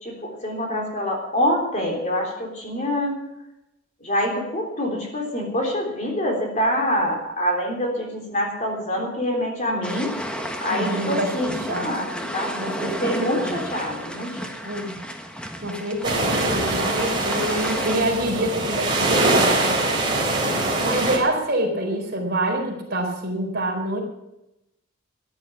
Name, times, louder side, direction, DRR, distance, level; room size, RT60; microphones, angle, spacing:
voice 1, 0.0-3.2 4.0-10.1 10.6-14.7, equal, 35° left, 1 dB, 3.6 m, -26 dB
sound 1, 9.8-18.0, equal, 5° left, 1.3 m, -32 dB
voice 2, 10.7-11.9 12.6-13.5 14.6-15.0 15.6-19.8 20.8-24.0, right 1 dB, 50° right, 1 dB, 4.0 m, -26 dB
sound 2, 16.0-21.2, right 2 dB, 20° right, 3.8 m, -23 dB
14.0 x 10.5 x 7.2 m, 0.88 s
head